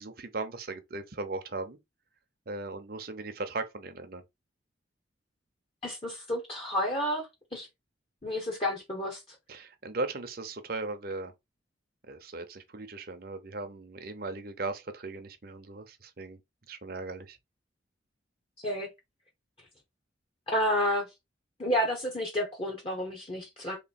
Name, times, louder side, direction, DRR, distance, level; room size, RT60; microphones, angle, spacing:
voice 1, 0.0-1.8 2.5-4.2 9.5-11.3 12.1-16.4 16.7-17.4, right 3 dB, 50° right, 0.7 m, -38 dB
voice 2, 5.8-7.2 7.5-7.7 8.2-9.2 18.6-18.9 20.5-21.1 21.6-23.8, equal, 30° left, 0.9 m, -30 dB
3.1 x 3.1 x 4.2 m
head